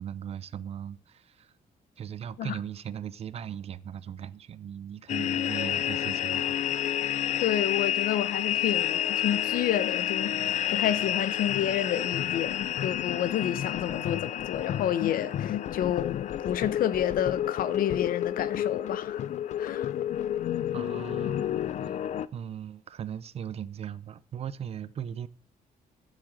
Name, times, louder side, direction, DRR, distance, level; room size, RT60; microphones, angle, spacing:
voice 1, 0.0-1.5 2.0-6.6 20.7-22.0 22.3-25.3, right 9 dB, 45° right, 0.6 m, -38 dB
sound 1, 5.1-22.3, left 11 dB, 50° left, 0.4 m, -30 dB
voice 2, 7.4-19.3 19.6-19.9, left 10 dB, 70° left, 0.8 m, -30 dB
11.0 x 7.4 x 6.4 m
cardioid pair, 170°, 15 cm